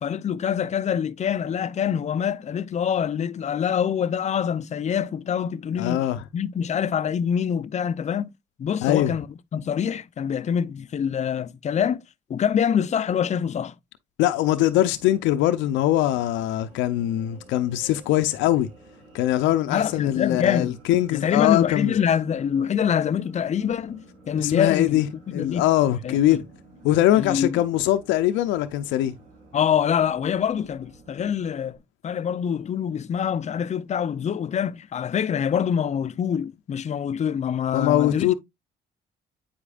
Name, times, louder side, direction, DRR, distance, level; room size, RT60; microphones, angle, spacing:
voice 1, 0.0-6.1 6.3-8.3 8.6-9.3 9.5-12.0 12.3-13.7 19.7-20.8 21.1-25.0 25.3-25.6 26.0-26.4 27.2-27.6 29.5-31.8 32.0-38.3, left 8 dB, 40° left, 0.5 m, -25 dB
voice 2, 5.8-6.2 8.8-9.1 14.2-18.7 19.1-21.9 24.3-25.1 25.3-26.4 26.8-29.1 37.7-38.3, left 13 dB, 85° left, 0.5 m, -22 dB
sound 1, 14.5-31.8, right 2 dB, 80° right, 3.2 m, -52 dB
8.6 x 4.9 x 2.4 m
supercardioid pair, 80°, 19 cm